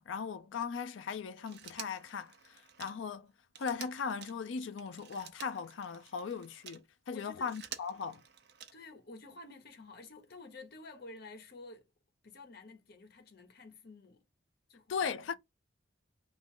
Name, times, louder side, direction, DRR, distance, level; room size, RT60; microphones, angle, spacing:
voice 1, 0.0-3.3 3.6-8.2 14.9-15.4, left 6 dB, 80° left, 0.4 m, -38 dB
Telephone, 1.4-6.8 7.3-9.0 10.3-10.4, right 8 dB, 60° right, 0.7 m, -50 dB
voice 2, 7.1-7.5 8.7-11.9 12.2-14.2 14.7-15.1, left 3 dB, 55° left, 0.9 m, -51 dB
2.9 x 2.5 x 3.6 m
head